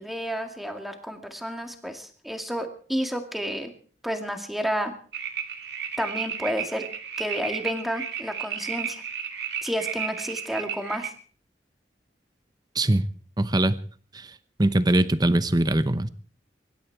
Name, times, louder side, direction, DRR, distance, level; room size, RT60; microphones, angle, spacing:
voice 1, 0.0-3.7 4.0-4.9 6.0-6.8 7.2-9.0 9.6-11.1, equal, ahead, 5 dB, 2.1 m, -31 dB
sound 1, 5.1-11.1, right 7 dB, 70° right, 2.1 m, -33 dB
voice 2, 12.7-13.1 13.4-13.8 14.1-14.3 14.6-16.1, right 1 dB, 25° right, 14 dB, 0.9 m, -22 dB
24.0 x 12.5 x 4.8 m, 0.43 s
head